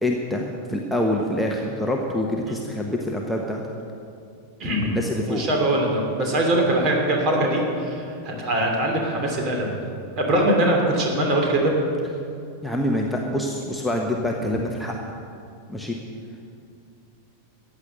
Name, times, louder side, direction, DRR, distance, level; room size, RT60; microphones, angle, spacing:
voice 1, 0.0-3.6 4.8-5.4 12.6-14.9 15.7-16.0, left 1 dB, ahead, -1 dB, 1.1 m, -26 dB
voice 2, 4.6-5.0 5.3-9.8 10.2-11.7, right 1 dB, 35° right, 0 dB, 3.0 m, -22 dB
14.5 x 8.9 x 6.5 m, 2.5 s
figure-of-eight pair, 90°, 0 cm